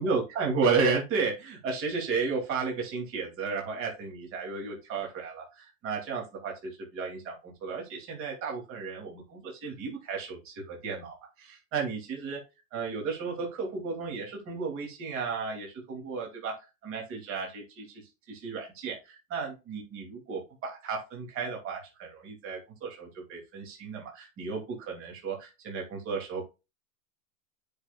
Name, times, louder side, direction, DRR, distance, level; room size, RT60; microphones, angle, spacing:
voice 1, 0.0-12.4 12.7-26.5, right 4 dB, 30° right, 0 dB, 2.7 m, -33 dB
9.7 x 5.5 x 2.4 m, 0.27 s
supercardioid pair, 150°, 41 cm